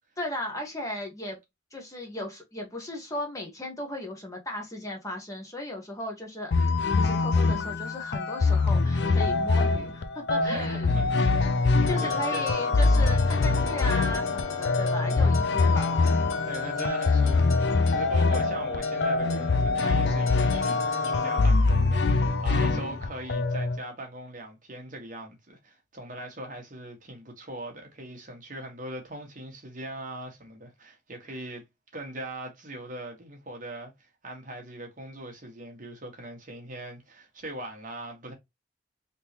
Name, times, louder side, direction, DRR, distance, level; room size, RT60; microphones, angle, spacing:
voice 1, 0.2-1.4 1.7-6.5 6.9-10.9 11.9-15.9 22.6-22.8, left 1 dB, 15° left, 1.1 m, -36 dB
sound 1, 6.5-23.8, left 3 dB, 60° left, 0.5 m, -24 dB
voice 2, 10.3-11.1 12.0-12.7 16.4-20.8 21.0-31.6 31.9-38.3, right 1 dB, 40° right, 1.2 m, -40 dB
sound 2, 11.9-21.5, left 4 dB, 90° left, 0.8 m, -32 dB
3.6 x 3.0 x 2.8 m
head